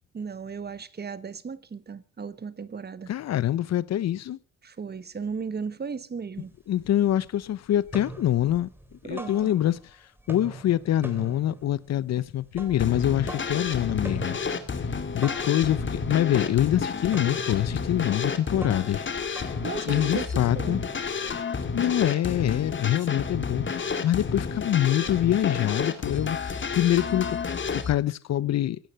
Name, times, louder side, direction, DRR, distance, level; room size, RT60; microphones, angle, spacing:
voice 1, 0.1-3.1 4.6-6.5 9.0-9.5 19.6-20.8, right 5 dB, 35° right, 1.2 m, -35 dB
voice 2, 3.1-4.4 6.7-8.7 9.0-9.8 10.3-14.4 15.1-19.0 19.3-19.5 19.9-20.8 21.7-27.4 27.7-28.8, left 12 dB, 60° left, 0.7 m, -25 dB
sound 1, 6.4-6.5 6.8-7.4 7.7-9.9 10.2-20.3, right 1 dB, 5° right, 3.5 m, -43 dB
sound 2, 12.8-27.9, left 5 dB, 40° left, 2.4 m, -30 dB
17.0 x 11.5 x 5.7 m
cardioid pair, 90°, 30 cm